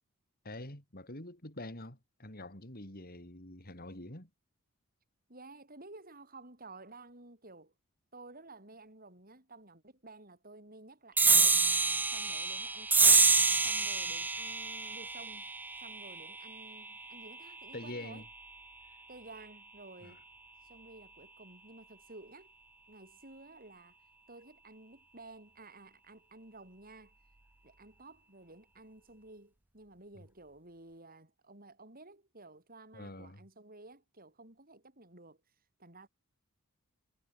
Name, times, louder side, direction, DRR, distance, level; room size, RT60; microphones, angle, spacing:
voice 1, 0.4-4.3 17.7-18.2 20.0-20.2 32.9-33.4, left 1 dB, 40° left, 5.8 m, -45 dB
voice 2, 5.3-7.7 8.1-11.6 12.1-13.3 13.6-15.5 15.8-18.2 19.1-20.2 20.6-22.5 22.9-24.0 24.3-27.1 27.6-35.4 35.8-36.1, right 2 dB, 40° right, 7.4 m, -53 dB
sound 1, 11.2-18.0, right 4 dB, 10° right, 0.3 m, -28 dB
head